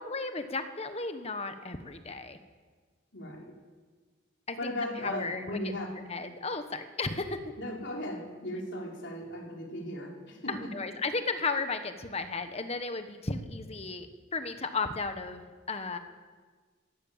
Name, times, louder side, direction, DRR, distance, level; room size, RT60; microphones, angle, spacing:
voice 1, 0.0-2.4 4.5-4.7 5.0-5.5 6.1-7.4 10.5-14.1 14.3-15.4 15.7-16.0, left 3 dB, 30° left, 8 dB, 1.3 m, -34 dB
voice 2, 3.1-3.5 4.6-6.0 7.6-10.9, left 1 dB, 60° left, 0 dB, 4.2 m, -37 dB
22.5 x 16.0 x 7.5 m, 1.5 s
head